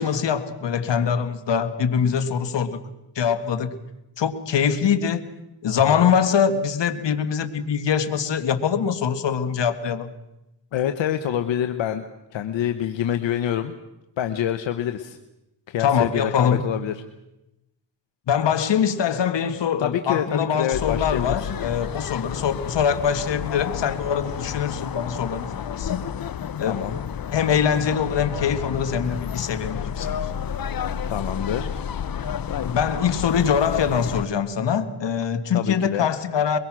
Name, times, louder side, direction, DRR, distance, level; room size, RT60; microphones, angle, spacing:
voice 1, 0.0-2.8 3.2-3.8 4.2-5.3 5.6-10.1 15.8-16.6 18.3-26.1 26.6-26.8 27.3-30.3 32.6-36.6, left 7 dB, 70° left, 1.9 m, -23 dB
voice 2, 10.7-12.0 12.3-13.7 14.2-15.2 15.7-16.9 19.8-21.6 26.6-27.0 31.1-31.7 35.5-36.1, left 10 dB, 85° left, 1.1 m, -26 dB
sound 1, 20.7-34.3, left 8 dB, 50° left, 0.9 m, -31 dB
22.5 x 22.5 x 6.2 m
cardioid pair, 75°, 44 cm